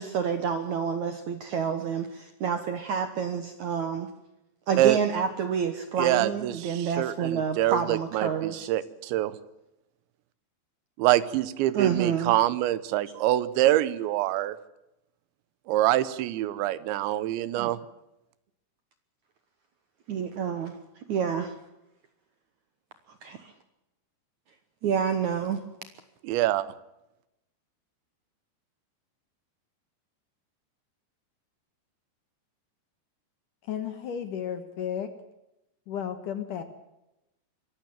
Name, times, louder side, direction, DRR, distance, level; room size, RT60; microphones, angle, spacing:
voice 1, 0.0-4.1 4.7-8.7 11.7-12.4 17.6-17.7 20.1-20.7 21.1-21.5 23.2-23.5 24.8-25.6, right 7 dB, 65° right, 9 dB, 1.8 m, -28 dB
voice 2, 6.0-9.3 11.0-14.6 15.7-17.8 26.2-26.7, right 14 dB, 90° right, 17 dB, 3.3 m, -25 dB
voice 3, 33.6-35.1 35.9-36.6, left 8 dB, 60° left, 10 dB, 2.4 m, -33 dB
24.5 x 14.5 x 9.0 m, 0.91 s
omnidirectional pair, 5.1 m